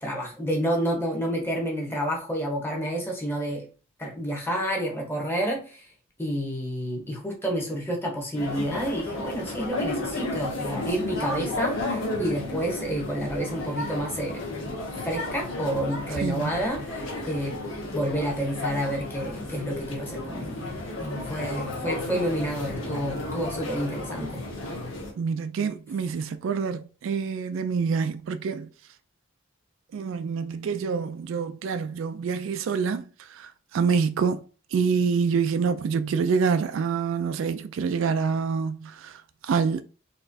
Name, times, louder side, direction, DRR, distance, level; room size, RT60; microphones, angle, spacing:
voice 1, 0.0-3.7 4.0-5.8 6.2-14.4 14.7-17.6 17.9-24.4, equal, 10° left, 1.0 m, -29 dB
sound 1, 8.3-25.1, left 2 dB, 80° left, 1.2 m, -33 dB
voice 2, 16.1-16.5 25.2-28.7 29.9-34.4 34.7-39.8, right 5 dB, 70° right, 0.3 m, -26 dB
4.0 x 3.0 x 2.7 m
head